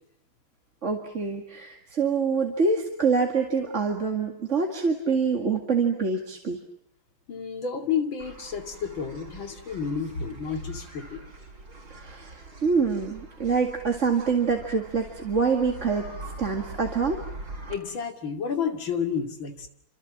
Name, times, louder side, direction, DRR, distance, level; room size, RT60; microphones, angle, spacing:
voice 1, 0.8-6.6 12.0-16.1 16.4-17.2, right 5 dB, 35° right, 2 dB, 2.3 m, -25 dB
voice 2, 7.3-11.2 17.7-19.7, left 6 dB, 70° left, 5 dB, 3.1 m, -30 dB
sound 1, 8.2-17.7, right 2 dB, 65° right, 5.5 m, -43 dB
28.5 x 26.5 x 7.5 m, 0.68 s
omnidirectional pair, 2.2 m